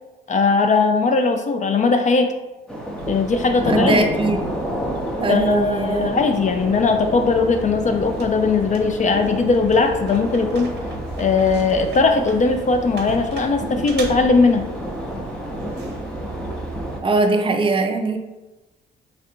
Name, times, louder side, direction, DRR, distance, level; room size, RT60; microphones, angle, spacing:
voice 1, 0.3-2.3 3.1-4.4 5.3-10.7 11.2-14.7, left 4 dB, 40° left, 5 dB, 0.4 m, -19 dB
sound 1, 2.7-17.0, equal, 5° left, 0.8 m, -30 dB
sound 2, 3.0-17.0, right 2 dB, 60° right, 0.7 m, -36 dB
voice 2, 3.7-4.4 5.2-6.1 17.0-18.2, right 3 dB, 25° right, 5 dB, 0.5 m, -21 dB
3.2 x 2.5 x 4.4 m, 1.1 s
cardioid pair, 90°, 20 cm